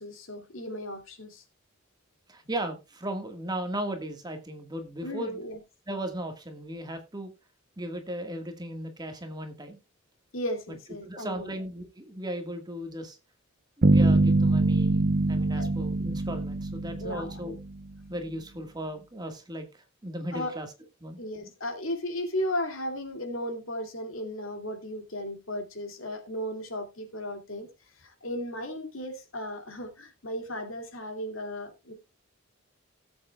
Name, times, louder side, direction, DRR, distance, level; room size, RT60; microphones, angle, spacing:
voice 1, 0.0-1.4 5.0-5.6 10.3-11.5 15.5-15.7 17.0-17.4 20.3-20.5 21.2-27.7 28.0-31.9, left 1 dB, 70° left, 2.3 m, -35 dB
voice 2, 2.3-5.4 5.9-7.3 7.8-9.8 10.7-10.8 11.0-13.2 13.8-17.6 18.1-20.7 21.0-21.2, right 1 dB, 20° right, 1.5 m, -36 dB
sound 1, 13.8-17.8, right 2 dB, 45° right, 0.6 m, -23 dB
17.5 x 7.8 x 2.3 m
head